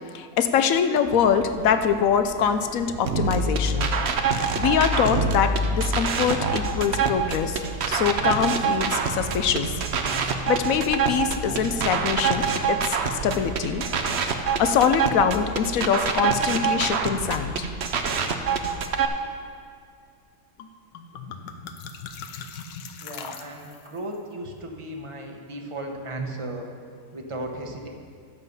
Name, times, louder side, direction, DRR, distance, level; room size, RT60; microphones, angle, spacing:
voice 1, 0.1-3.9 4.6-7.6 7.9-9.7 10.5-13.9 14.6-17.5, left 7 dB, 65° left, 9 dB, 0.9 m, -24 dB
sound 1, 1.0-14.4, right 4 dB, 70° right, 0.4 m, -39 dB
sound 2, 3.1-19.1, right 5 dB, 55° right, 0.8 m, -25 dB
sound 3, 20.6-20.7 20.9-24.0, left 6 dB, 85° left, 1.4 m, -39 dB
voice 2, 23.0-26.7 27.1-27.9, right 1 dB, 20° right, 2 dB, 1.0 m, -35 dB
12.0 x 7.5 x 5.4 m, 2.2 s
omnidirectional pair, 1.8 m